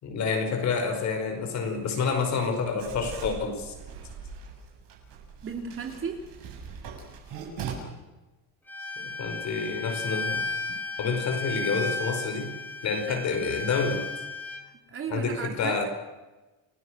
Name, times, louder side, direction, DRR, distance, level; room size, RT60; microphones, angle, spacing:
voice 1, 0.0-3.7 9.0-10.5 11.0-12.5 12.8-14.0 15.1-15.8, left 5 dB, 40° left, 6 dB, 5.1 m, -28 dB
Writing, 2.8-7.7, right 6 dB, 55° right, 7.5 m, -41 dB
voice 2, 5.4-6.2 13.1-13.2 14.7-15.8, right 6 dB, 30° right, 3 dB, 3.3 m, -35 dB
Bowed string instrument, 8.7-14.6, left 3 dB, 5° left, 2.3 m, -34 dB
30.0 x 20.0 x 6.4 m, 1.1 s
cardioid pair, 170°, 42 cm